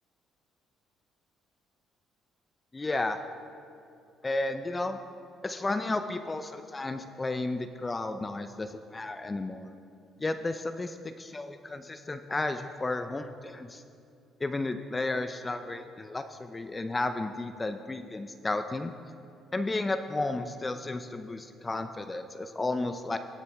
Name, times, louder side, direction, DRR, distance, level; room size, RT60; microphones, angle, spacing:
voice 1, 2.7-3.2 4.2-5.0 5.4-9.7 10.2-13.8 14.4-18.9 19.5-23.2, left 2 dB, 25° left, 9 dB, 0.5 m, -33 dB
17.0 x 6.7 x 3.4 m, 2.5 s
supercardioid pair, 75°, 0 cm